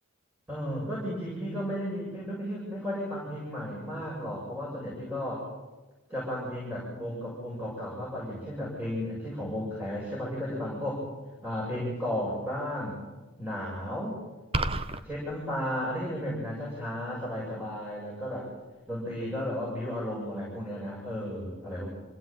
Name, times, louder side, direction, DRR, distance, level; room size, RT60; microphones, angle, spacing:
voice 1, 0.5-5.5 6.1-11.0 11.4-12.9 13.4-14.2 15.0-18.5 18.9-21.9, equal, 10° right, -6 dB, 7.7 m, -34 dB
sound 1, 14.5-15.0, right 2 dB, 25° right, 1.0 m, -28 dB
27.0 x 17.0 x 9.2 m, 1.2 s
head